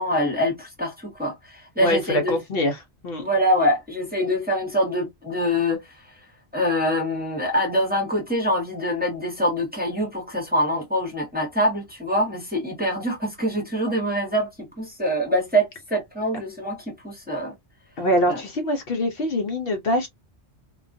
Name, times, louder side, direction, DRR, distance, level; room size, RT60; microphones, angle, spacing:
voice 1, 0.0-2.4 3.2-6.0 6.5-17.5 18.3-18.4, equal, 10° right, 0.8 m, -24 dB
voice 2, 1.8-3.2 18.0-20.1, left 1 dB, 65° left, 0.8 m, -24 dB
2.3 x 2.2 x 2.5 m
omnidirectional pair, 1.1 m